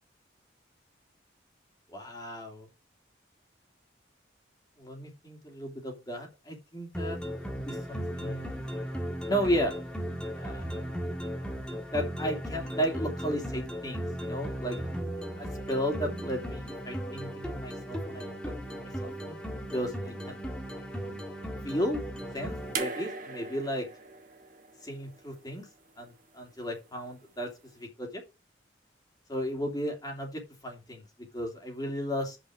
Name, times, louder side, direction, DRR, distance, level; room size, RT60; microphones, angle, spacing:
voice 1, 1.9-2.7 4.8-7.2 7.5-8.7 9.3-9.7 10.3-10.9 11.9-14.8 15.3-19.4 19.7-20.4 21.6-22.0 22.3-23.9 24.8-25.7 26.0-27.5 27.8-28.2 29.3-31.0 31.3-32.4, equal, 20° left, 1 dB, 2.7 m, -34 dB
sound 1, 6.9-22.8, equal, 5° left, 1.6 m, -36 dB
sound 2, 22.7-25.9 27.1-27.2, right 4 dB, 45° right, 1.7 m, -39 dB
9.5 x 6.4 x 4.9 m, 0.28 s
head